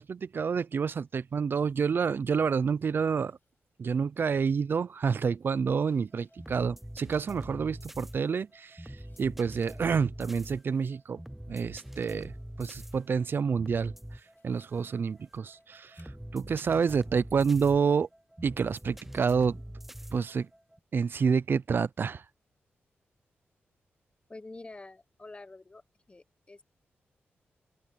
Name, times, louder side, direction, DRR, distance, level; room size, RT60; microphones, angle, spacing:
voice 1, 0.0-3.4 3.8-11.2 11.5-12.3 12.6-18.1 18.4-19.6 20.1-20.5 20.9-22.2, right 6 dB, 55° right, 0.5 m, -28 dB
sound 1, 2.2-3.7 4.3-4.4 5.6-8.6 8.9-9.4 9.7-11.0 11.5-12.3 12.7-13.4 14.0-14.8 15.5-16.2, left 5 dB, 55° left, 7.7 m, -73 dB
sound 2, 6.1-20.8, right 1 dB, 5° right, 0.4 m, -44 dB
voice 2, 24.3-26.6, left 2 dB, 25° left, 1.2 m, -47 dB
open air
cardioid pair, 75°, 4 cm